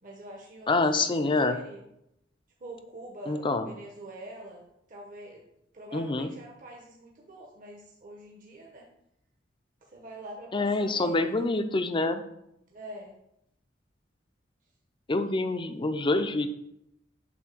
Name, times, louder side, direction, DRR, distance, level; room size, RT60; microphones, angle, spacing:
voice 1, 0.0-1.8 2.6-5.4 5.7-8.9 9.8-11.6 12.7-13.2, right 1 dB, 45° right, -1 dB, 0.9 m, -45 dB
voice 2, 0.7-1.6 3.3-3.7 5.9-6.3 10.5-12.2 15.1-16.5, left 2 dB, 25° left, 9 dB, 0.5 m, -26 dB
8.0 x 2.7 x 6.0 m, 0.80 s
head